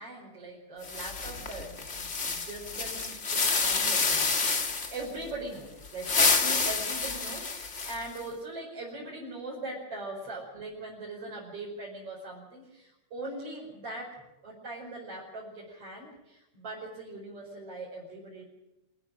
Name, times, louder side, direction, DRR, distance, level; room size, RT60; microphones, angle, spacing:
voice 1, 0.0-4.3 4.6-14.1 14.4-18.4, right 2 dB, 50° right, -5 dB, 6.1 m, -41 dB
sound 1, 0.8-5.0 5.8-8.2, left 4 dB, 30° left, 1.6 m, -28 dB
26.0 x 12.5 x 9.9 m, 0.96 s
omnidirectional pair, 3.4 m